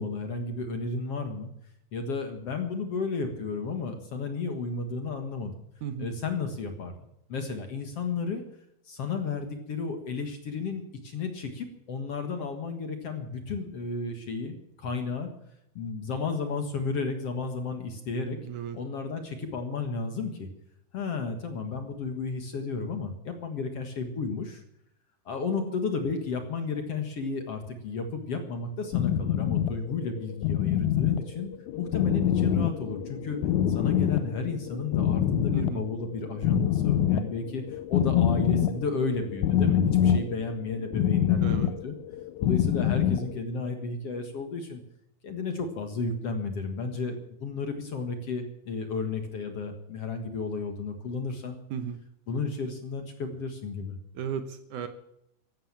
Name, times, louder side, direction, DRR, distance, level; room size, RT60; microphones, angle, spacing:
voice 1, 0.0-1.5 1.9-5.5 6.0-8.4 8.9-15.3 15.8-18.4 18.7-20.5 20.9-24.6 25.3-33.4 33.7-41.9 42.4-44.8 45.2-51.6 52.3-54.0, left 4 dB, 50° left, 6 dB, 2.1 m, -33 dB
voice 2, 18.4-18.8 35.5-35.8 41.4-41.7 51.7-52.0 54.1-54.9, right 7 dB, 70° right, 9 dB, 2.3 m, -34 dB
sound 1, 28.9-43.3, left 10 dB, 75° left, 1.7 m, -26 dB
15.0 x 12.5 x 7.4 m, 0.78 s
omnidirectional pair, 4.2 m